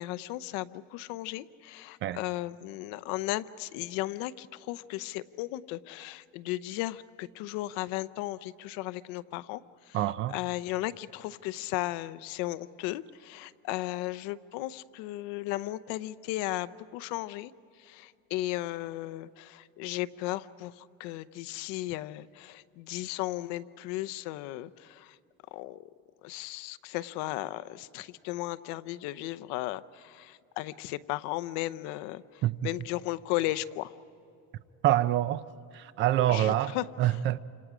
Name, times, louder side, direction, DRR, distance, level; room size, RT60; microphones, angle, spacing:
voice 1, 0.0-25.2 25.5-25.9 26.2-33.9 36.3-37.2, left 17 dB, 70° left, 0.7 m, -35 dB
voice 2, 9.9-10.3 32.4-32.6 34.8-35.4 35.7-37.4, right 13 dB, 40° right, 0.5 m, -26 dB
29.5 x 26.5 x 5.0 m
cardioid pair, 165°, 30 cm